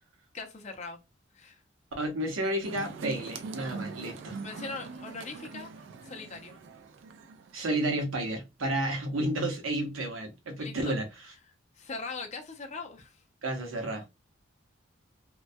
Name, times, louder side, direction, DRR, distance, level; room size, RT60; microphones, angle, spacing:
voice 1, 0.3-1.0 1.3-1.6 4.4-5.7 6.0-6.6 10.6-11.0 11.8-13.2, left 4 dB, 35° left, 0.5 m, -40 dB
voice 2, 2.0-4.4 7.5-11.0 13.4-14.0, right 1 dB, 85° right, 0.7 m, -31 dB
sound 1, 2.6-7.7, right 4 dB, 65° right, 0.3 m, -42 dB
2.2 x 2.1 x 2.5 m
head